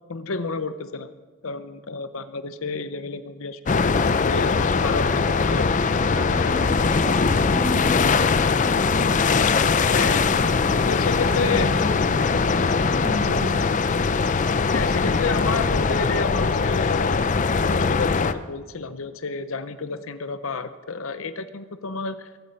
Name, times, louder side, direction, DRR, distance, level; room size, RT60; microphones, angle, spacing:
voice 1, 0.1-1.1 1.4-3.8 4.3-5.8 6.3-6.8 9.9-10.3 10.8-11.7 13.3-13.4 14.7-22.4, left 4 dB, 70° left, 12 dB, 0.7 m, -30 dB
sound 1, 3.7-18.3, left 4 dB, 35° left, 0.5 m, -21 dB
voice 2, 6.1-12.6 13.0-13.5, equal, 15° right, 1 dB, 2.3 m, -34 dB
22.5 x 8.6 x 5.3 m, 1.3 s
head